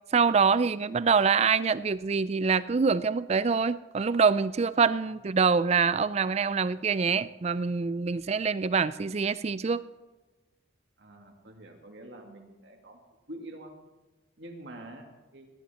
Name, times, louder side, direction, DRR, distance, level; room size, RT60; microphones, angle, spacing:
voice 1, 0.1-9.8, right 5 dB, 35° right, 16 dB, 0.4 m, -25 dB
voice 2, 11.0-13.0 13.3-13.8 14.4-15.5, right 1 dB, 60° right, 2 dB, 2.2 m, -46 dB
17.5 x 11.5 x 4.4 m, 1.2 s
head